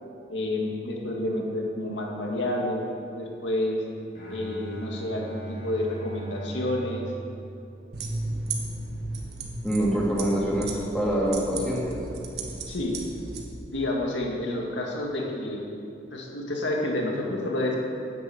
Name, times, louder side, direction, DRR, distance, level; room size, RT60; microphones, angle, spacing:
voice 1, 0.3-2.8 3.1-3.8 4.3-7.1 12.7-13.0 13.7-15.7 16.1-17.8, left 1 dB, 90° left, -1 dB, 2.2 m, -29 dB
Bowed string instrument, 4.1-8.3, right 2 dB, 50° left, 2.8 m, -39 dB
sound 1, 7.9-13.4, right 2 dB, 65° right, 1.6 m, -35 dB
voice 2, 9.6-12.0, equal, 5° left, -5 dB, 2.7 m, -25 dB
10.5 x 10.0 x 7.9 m, 2.6 s
head